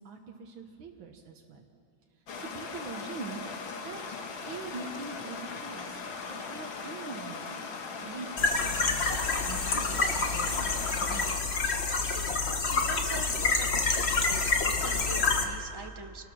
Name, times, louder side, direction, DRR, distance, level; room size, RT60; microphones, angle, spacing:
voice 1, 0.0-1.6 2.4-3.4 3.8-4.2 4.5-6.0 6.3-7.6 8.0-10.7 11.0-11.4, right 4 dB, 80° right, 1 dB, 2.1 m, -43 dB
Stream, 2.3-11.4, left 4 dB, 85° left, 2.3 m, -39 dB
sound 1, 8.4-15.4, left 4 dB, 35° left, 1.5 m, -28 dB
voice 2, 12.0-13.7 13.9-16.3, right 4 dB, 40° right, 6 dB, 0.3 m, -44 dB
28.5 x 19.5 x 6.2 m, 2.6 s
omnidirectional pair, 2.1 m